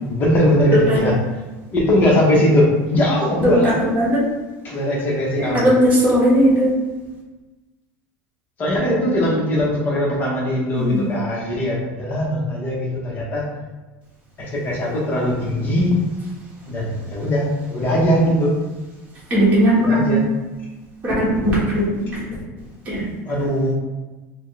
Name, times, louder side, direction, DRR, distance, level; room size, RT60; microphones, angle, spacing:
voice 1, 0.0-1.2 1.7-3.7 4.6-5.7 8.6-13.5 14.4-16.0 16.7-18.6 19.8-20.2 23.2-23.7, left 1 dB, 30° left, -3 dB, 0.9 m, -20 dB
voice 2, 3.4-4.2 5.4-6.7 10.8-11.0 19.3-20.1 21.0-21.8 22.1-22.2 22.8-23.0, equal, 20° right, -8 dB, 1.4 m, -17 dB
4.2 x 2.2 x 3.2 m, 1.2 s
cardioid pair, 155°, 7 cm